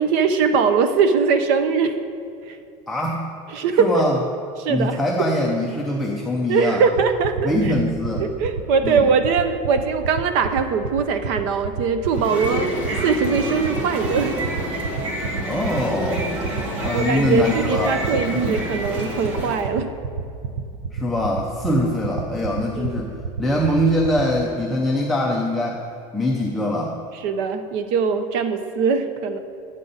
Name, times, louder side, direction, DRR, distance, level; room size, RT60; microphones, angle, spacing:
voice 1, 0.0-2.0 2.5-2.6 3.5-4.0 4.6-5.0 6.5-7.5 8.2-14.4 16.9-19.9 22.7-23.0 27.2-29.4, right 5 dB, 50° right, 8 dB, 0.6 m, -21 dB
voice 2, 2.9-3.3 3.8-4.2 4.7-6.8 7.4-8.2 8.8-9.1 15.5-16.3 16.8-18.0 18.3-18.6 20.9-23.1 23.4-25.8 26.1-27.0, left 1 dB, ahead, -3 dB, 0.5 m, -23 dB
sound 1, 6.9-24.2, right 6 dB, 85° right, 0.7 m, -28 dB
sound 2, 12.0-19.7, right 1 dB, 65° right, 1.8 m, -28 dB
11.0 x 7.4 x 4.0 m, 2.4 s
cardioid pair, 175°, 16 cm